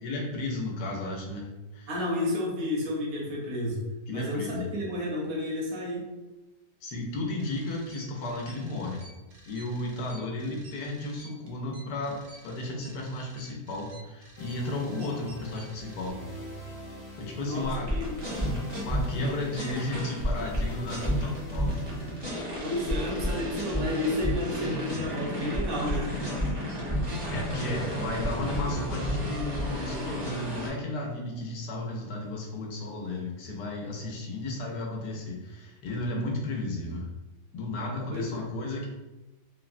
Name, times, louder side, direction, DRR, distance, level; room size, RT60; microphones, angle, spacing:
voice 1, 0.0-1.9 4.1-4.7 6.8-9.1 9.5-16.2 17.2-17.9 18.8-21.8 27.3-37.1 37.5-38.9, left 2 dB, 85° left, -1 dB, 1.2 m, -34 dB
voice 2, 1.9-6.1 17.4-18.5 22.6-26.2 38.1-38.5, left 1 dB, 70° right, -3 dB, 1.3 m, -31 dB
sound 1, 7.4-16.1, right 1 dB, 90° right, 1.3 m, -52 dB
sound 2, 14.4-28.2, equal, 45° left, 0.5 m, -46 dB
sound 3, 17.7-30.7, equal, 25° right, 0.6 m, -31 dB
3.6 x 2.1 x 2.4 m, 1.1 s
omnidirectional pair, 1.8 m